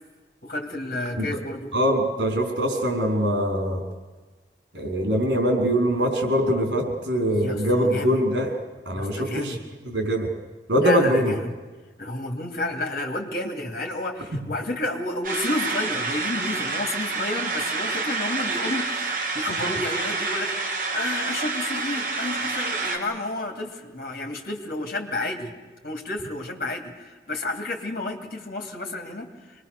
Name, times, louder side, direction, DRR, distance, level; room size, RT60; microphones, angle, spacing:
voice 1, 0.4-1.7 7.3-8.2 8.9-9.6 10.8-11.6 12.0-20.5 20.9-25.5 25.8-29.7, left 2 dB, 55° left, 3 dB, 2.7 m, -31 dB
voice 2, 1.7-3.8 4.7-8.5 8.8-9.6 9.8-10.3 10.7-11.3, equal, 85° right, 2 dB, 4.9 m, -23 dB
sound 1, 15.2-23.0, right 4 dB, 50° right, 3.1 m, -28 dB
25.5 x 21.5 x 6.8 m, 1.3 s
head